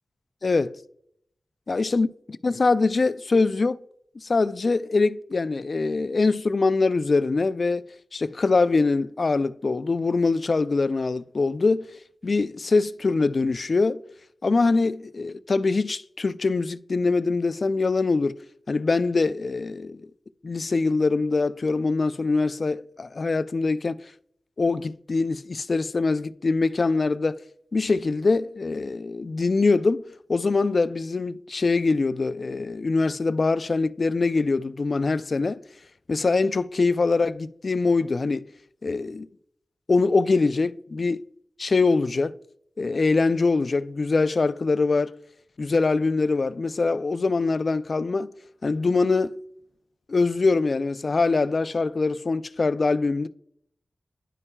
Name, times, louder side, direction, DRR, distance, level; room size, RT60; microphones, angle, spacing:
voice 1, 0.4-0.7 1.7-2.1 2.4-3.8 4.2-7.8 8.1-11.9 12.2-14.0 14.4-18.4 18.7-20.0 20.4-24.0 24.6-27.4 27.7-30.0 30.3-35.6 36.1-38.4 38.8-39.3 39.9-41.2 41.6-42.4 42.8-45.1 45.6-48.3 48.6-49.4 50.1-53.3, left 3 dB, 55° left, 0.3 m, -23 dB
11.0 x 5.4 x 2.2 m
cardioid pair, 60°, 0 cm